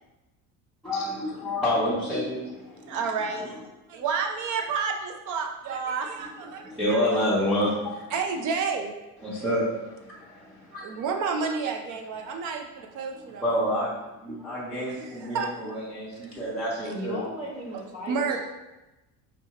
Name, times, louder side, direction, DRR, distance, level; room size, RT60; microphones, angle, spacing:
voice 1, 0.8-3.0 3.3-3.6 6.2-8.1 9.2-11.0 13.4-13.9 14.2-17.2, equal, ahead, -11 dB, 0.8 m, -29 dB
voice 2, 2.9-3.5 3.9-7.0 8.1-8.9 10.7-13.6 14.9-15.5 18.1-18.4, right 5 dB, 55° right, 3 dB, 0.6 m, -30 dB
voice 3, 16.9-18.4, equal, 15° right, -6 dB, 1.3 m, -36 dB
4.6 x 2.7 x 2.9 m, 1.0 s
cardioid pair, 140°, 36 cm